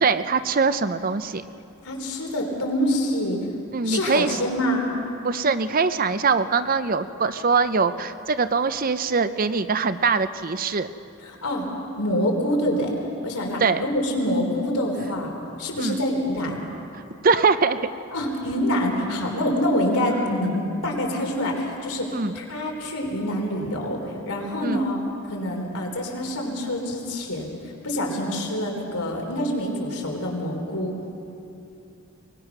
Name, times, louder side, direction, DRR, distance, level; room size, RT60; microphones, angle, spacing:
voice 1, 0.0-1.4 3.7-4.4 5.2-10.9 13.6-13.8 15.8-16.0 16.9-17.8 22.1-22.4 24.6-24.8, right 4 dB, 40° right, 12 dB, 0.6 m, -22 dB
voice 2, 1.8-3.4 3.8-4.9 11.2-11.7 12.0-12.9 13.2-15.3 15.6-16.6 18.1-25.0 25.3-31.0, left 1 dB, 85° left, 1 dB, 3.8 m, -26 dB
22.5 x 20.5 x 6.0 m, 2.7 s
head